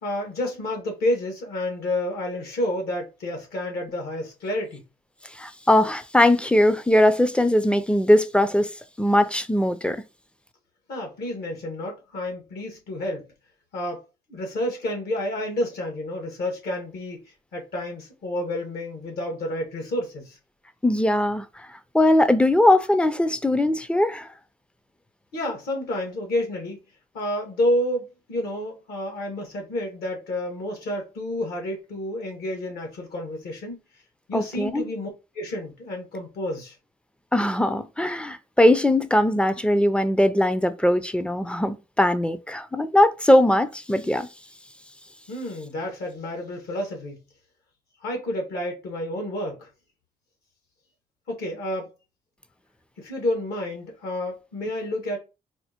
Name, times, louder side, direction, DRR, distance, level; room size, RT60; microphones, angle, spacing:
voice 1, 0.0-4.8 10.9-13.3 13.7-14.0 14.3-17.2 17.5-20.4 25.3-26.8 27.1-33.8 34.3-35.1 35.3-36.7 45.3-47.2 48.0-49.7 51.3-51.9 53.0-55.2, left 1 dB, 75° left, 1.5 m, -29 dB
voice 2, 5.4-8.7 9.0-10.0 20.8-21.4 21.9-24.3 34.3-34.9 37.3-44.3, left 1 dB, 5° left, 0.4 m, -20 dB
4.3 x 2.1 x 2.8 m
cardioid pair, 75°, 17 cm